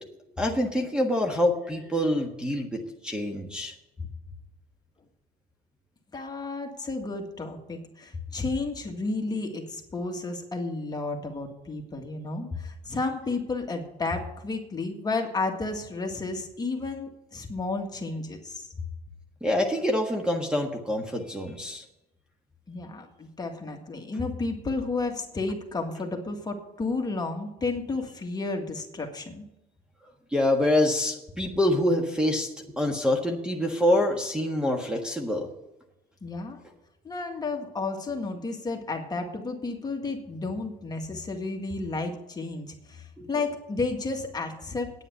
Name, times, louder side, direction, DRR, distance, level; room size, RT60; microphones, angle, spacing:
voice 1, 0.0-3.7 19.4-21.8 30.3-32.5 32.7-35.5 43.2-43.3, left 1 dB, 5° right, 2 dB, 1.5 m, -26 dB
voice 2, 6.1-18.7 22.7-29.5 36.2-36.6 37.0-44.9, left 3 dB, 25° left, 2 dB, 1.9 m, -32 dB
9.4 x 9.1 x 6.8 m, 0.92 s
cardioid pair, 110°, 17 cm